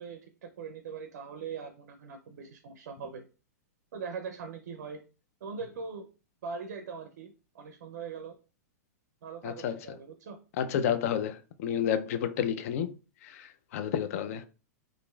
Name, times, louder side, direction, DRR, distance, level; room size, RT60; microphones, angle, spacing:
voice 1, 0.0-3.3 3.9-5.0 5.4-6.1 6.4-8.3 9.2-10.4, right 5 dB, 70° right, 0.4 m, -41 dB
voice 2, 9.4-9.7 10.6-12.9 13.2-14.5, left 9 dB, 60° left, 0.4 m, -30 dB
2.9 x 2.5 x 2.2 m
hypercardioid pair, 120°, 9 cm